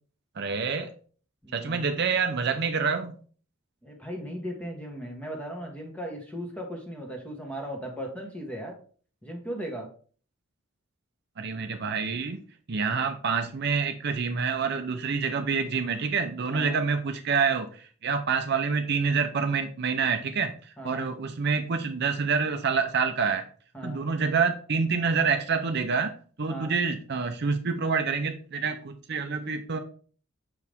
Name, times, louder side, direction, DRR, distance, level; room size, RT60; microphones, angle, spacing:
voice 1, 0.4-0.9 1.5-3.1 11.4-12.4 12.7-23.4 23.8-26.1 26.4-29.8, right 5 dB, 55° right, 6 dB, 0.6 m, -27 dB
voice 2, 1.4-1.9 3.8-8.8 9.2-9.9 16.5-16.8 20.8-21.1 23.7-24.0 26.5-26.7, equal, 5° left, 1 dB, 1.5 m, -37 dB
6.7 x 4.7 x 3.5 m, 0.43 s
head